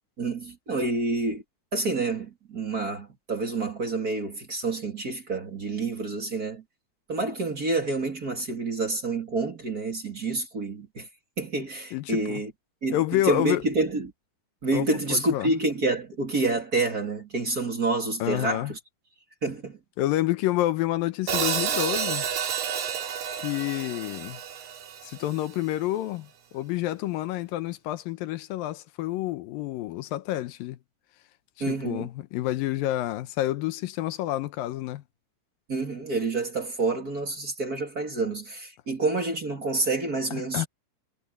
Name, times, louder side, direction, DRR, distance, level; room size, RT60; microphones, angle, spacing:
voice 1, 0.2-1.4 1.7-6.6 7.1-11.1 11.4-12.5 12.8-14.1 14.6-18.8 19.4-19.8 31.6-32.1 35.7-40.7, right 3 dB, 30° right, 2.5 m, -28 dB
voice 2, 11.9-12.4 12.9-13.6 14.7-15.5 18.2-18.7 20.0-22.3 23.4-24.4 25.0-30.8 31.7-35.0 40.3-40.7, left 15 dB, 85° left, 2.6 m, -29 dB
Hi-hat, 21.3-25.5, right 8 dB, 75° right, 4.1 m, -30 dB
omnidirectional pair, 4.0 m